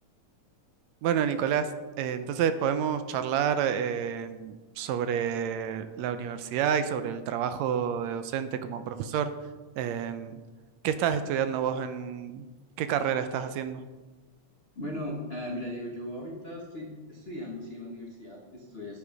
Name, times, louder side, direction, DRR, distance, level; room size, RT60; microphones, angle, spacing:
voice 1, 1.0-1.7 2.0-9.3 9.8-10.4 10.8-12.5 12.8-13.8, right 8 dB, 80° right, 10 dB, 1.8 m, -29 dB
voice 2, 14.7-19.0, left 1 dB, 90° left, -2 dB, 0.5 m, -38 dB
9.4 x 8.6 x 5.1 m, 1.3 s
omnidirectional pair, 3.4 m